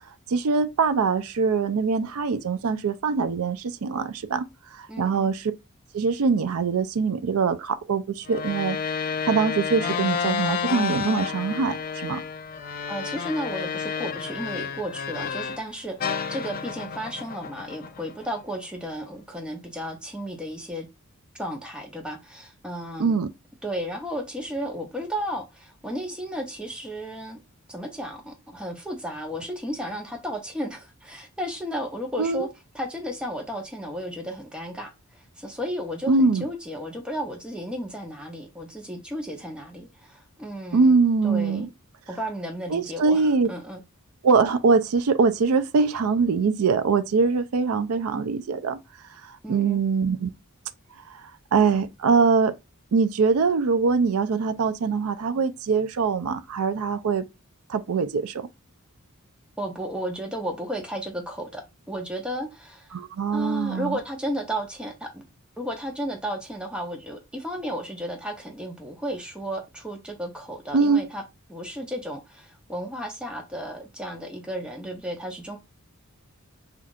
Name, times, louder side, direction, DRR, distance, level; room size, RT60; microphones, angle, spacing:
voice 1, 0.3-4.5 4.7-5.5 5.9-8.8 9.3-12.2 23.0-23.3 32.2-32.5 36.1-36.4 40.7-41.7 42.7-43.5 44.2-48.8 49.2-50.3 51.5-52.5 52.9-57.2 57.7-58.5 62.9-64.0 70.7-71.0, right 4 dB, 75° right, 0.4 m, -23 dB
voice 2, 4.9-5.3 12.9-20.9 21.3-23.2 23.6-27.4 27.7-32.5 32.7-40.9 41.2-41.7 42.1-43.8 49.4-49.8 59.6-62.9 63.3-65.2 65.6-71.2 71.5-75.6, equal, 5° right, 0.8 m, -33 dB
sound 1, 8.3-15.7 16.0-18.4, left 6 dB, 40° left, 0.3 m, -30 dB
5.6 x 2.4 x 2.4 m
head